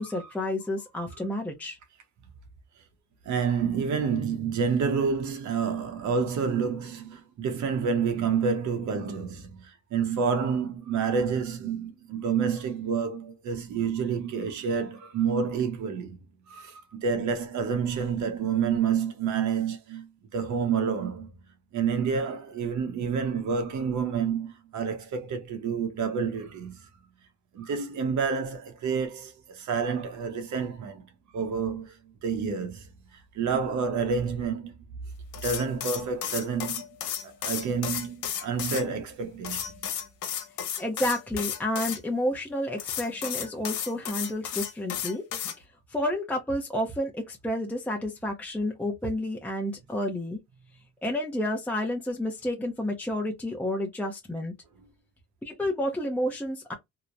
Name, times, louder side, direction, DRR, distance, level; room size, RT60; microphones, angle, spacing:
voice 1, 0.0-1.8 40.8-45.2 45.6-50.4 51.0-54.5 55.4-56.7, left 1 dB, 5° left, 0.6 m, -30 dB
voice 2, 3.2-16.2 16.5-21.3 21.7-26.8 27.5-31.0 31.3-32.9 33.3-34.7 35.4-36.9 37.2-39.6, right 6 dB, 70° right, 0.8 m, -29 dB
sound 1, 35.3-38.8 39.4-42.0 42.8-45.5, left 9 dB, 85° left, 0.8 m, -33 dB
2.9 x 2.1 x 2.5 m
cardioid pair, 90°, 30 cm